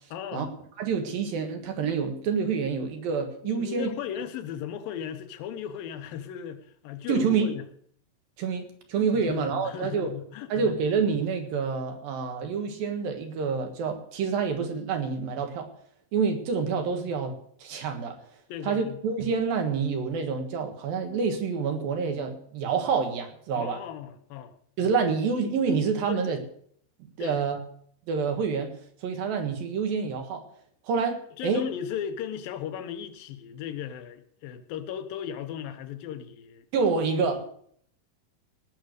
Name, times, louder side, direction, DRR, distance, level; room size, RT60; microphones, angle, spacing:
voice 1, 0.1-0.5 3.4-7.7 9.1-10.7 18.5-19.0 23.5-24.5 25.0-25.1 26.1-26.4 27.2-27.4 31.4-36.7 37.0-37.3, left 9 dB, 80° left, 9 dB, 2.8 m, -36 dB
voice 2, 0.8-3.9 7.1-7.5 8.4-10.1 10.5-15.7 16.1-17.3 17.6-18.2 18.6-23.8 24.8-26.4 27.2-27.6 28.1-28.7 29.0-30.4 30.8-31.7 36.7-37.4, right 5 dB, 80° right, 5 dB, 3.4 m, -27 dB
18.0 x 6.8 x 6.5 m, 0.63 s
omnidirectional pair, 4.1 m